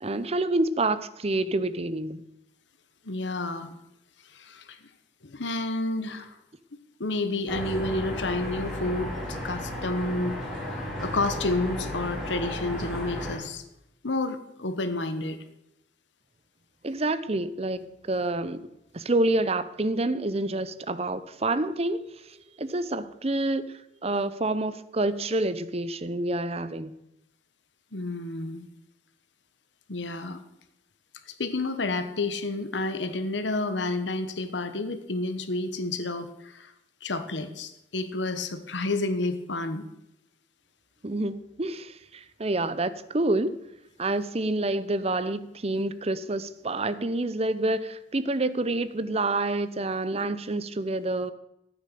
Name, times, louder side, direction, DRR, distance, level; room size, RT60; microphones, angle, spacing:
voice 1, 0.0-2.2 16.8-18.6 18.9-22.0 22.6-23.7 24.0-27.0 41.0-43.6 44.0-51.3, right 2 dB, 35° right, 0.7 m, -28 dB
voice 2, 3.0-3.8 4.3-4.8 5.2-6.4 7.0-13.6 14.0-15.4 27.9-28.7 29.9-30.4 31.3-36.7 37.0-39.9, left 2 dB, 75° left, 1.2 m, -30 dB
sound 1, 7.5-13.4, equal, 5° left, 6.6 m, -34 dB
13.5 x 9.0 x 6.8 m
head